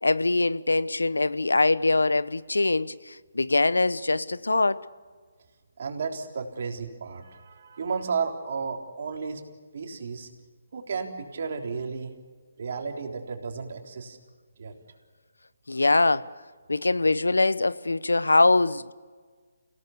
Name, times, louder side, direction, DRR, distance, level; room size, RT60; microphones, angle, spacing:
voice 1, 0.0-4.8 15.7-16.3 16.7-18.9, left 2 dB, 80° left, 0.9 m, -23 dB
voice 2, 5.8-9.4 9.7-10.3 10.7-12.1 12.6-14.2 14.6-14.8, right 5 dB, 55° right, 3.7 m, -33 dB
29.5 x 17.5 x 7.0 m
figure-of-eight pair, 140°, 0 cm